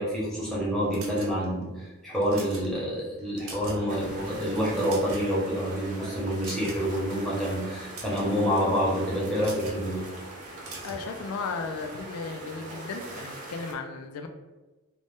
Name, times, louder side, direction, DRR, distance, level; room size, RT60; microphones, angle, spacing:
voice 1, 0.0-10.0, equal, ahead, -7 dB, 0.8 m, -27 dB
sound 1, 0.9-1.6 2.1-2.7 3.2-3.9 4.2-4.3 4.7-5.4 6.4-6.9 7.7-8.3 9.4-9.8 10.6-11.0, right 3 dB, 75° right, 0.7 m, -42 dB
sound 2, 3.9-13.7, right 1 dB, 35° right, 0.4 m, -42 dB
voice 2, 10.8-14.3, left 4 dB, 80° left, 5 dB, 0.3 m, -35 dB
2.6 x 2.1 x 3.3 m, 1.1 s
head